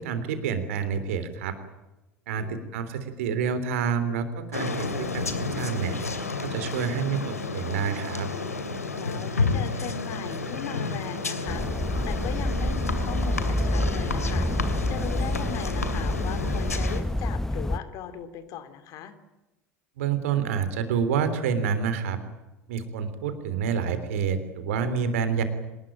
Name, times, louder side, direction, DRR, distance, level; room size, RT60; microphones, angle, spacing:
voice 1, 0.0-1.6 2.3-6.0 6.4-8.3 20.0-22.2 22.7-25.4, right 6 dB, 65° right, 11 dB, 3.5 m, -28 dB
voice 2, 2.3-2.6 8.9-11.6 12.0-14.5 14.9-19.1, left 8 dB, 45° left, 11 dB, 3.1 m, -38 dB
sound 1, 4.5-17.0, left 3 dB, 85° left, 2.6 m, -31 dB
sound 2, 11.5-17.8, left 1 dB, 5° left, 1.0 m, -27 dB
26.0 x 20.0 x 8.9 m, 1.0 s
figure-of-eight pair, 75°, 8 cm